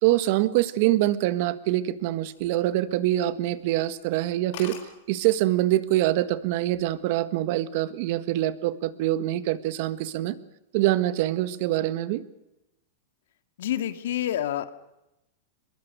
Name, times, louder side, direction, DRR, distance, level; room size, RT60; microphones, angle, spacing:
voice 1, 0.0-4.8 5.1-10.4 10.7-12.2, right 15 dB, 50° right, 15 dB, 1.5 m, -24 dB
sound 1, 2.0-3.1 3.4-3.6 4.0-4.1 4.3-4.4 4.5-4.9 5.8-6.1 6.5-6.9, left 9 dB, 50° left, 6.2 m, -43 dB
voice 2, 13.6-14.7, left 11 dB, 70° left, 11 dB, 1.9 m, -28 dB
23.5 x 22.0 x 6.5 m, 0.91 s
supercardioid pair, 150°, 0 cm